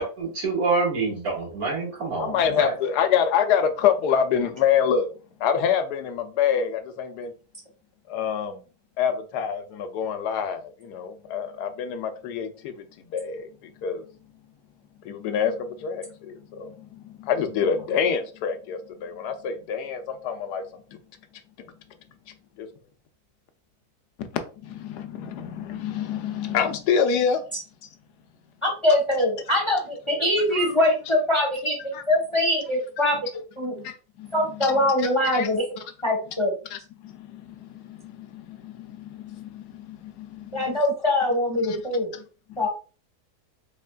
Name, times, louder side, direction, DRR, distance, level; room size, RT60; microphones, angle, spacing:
voice 1, 0.0-2.7, right 4 dB, 65° right, 2.1 m, -27 dB
voice 2, 2.2-5.1 5.4-7.3 8.1-8.6 9.0-12.7 13.1-13.5 13.8-14.0 15.0-16.7 17.2-20.6 22.6-22.7 24.2-24.3 24.6-27.4 30.5-30.7 31.9-32.0 33.8-34.3 34.6-34.7 35.3-35.5 36.7-36.8 37.0-37.1 37.6-40.8 41.7-41.8, left 7 dB, 90° left, 1.2 m, -26 dB
voice 3, 28.6-33.2 33.6-33.7 34.3-36.6 40.5-42.2 42.6-42.7, left 1 dB, 25° left, 0.7 m, -23 dB
4.2 x 3.2 x 2.2 m
omnidirectional pair, 1.7 m